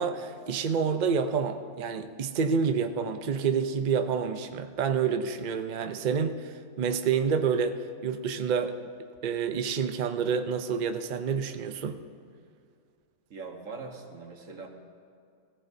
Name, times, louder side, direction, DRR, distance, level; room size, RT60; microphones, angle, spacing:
voice 1, 0.0-8.8 9.2-12.0, right 6 dB, 75° right, 8 dB, 0.4 m, -28 dB
voice 2, 13.3-14.7, right 4 dB, 60° right, 3 dB, 1.6 m, -41 dB
20.5 x 15.0 x 2.7 m, 2.4 s
omnidirectional pair, 1.6 m